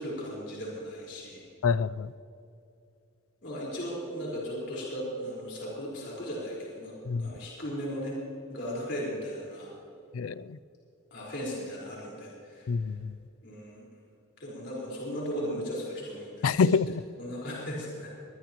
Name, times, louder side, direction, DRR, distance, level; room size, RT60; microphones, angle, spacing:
voice 1, 0.0-1.4 3.4-8.2 8.5-9.7 11.1-12.7 13.4-13.8 14.4-16.7 17.2-18.1, equal, 55° left, -5 dB, 4.7 m, -36 dB
voice 2, 1.6-2.1 7.1-7.3 10.1-10.4 12.7-13.1 16.4-17.0, left 5 dB, 85° left, 18 dB, 0.4 m, -26 dB
22.0 x 20.5 x 3.1 m, 2.7 s
head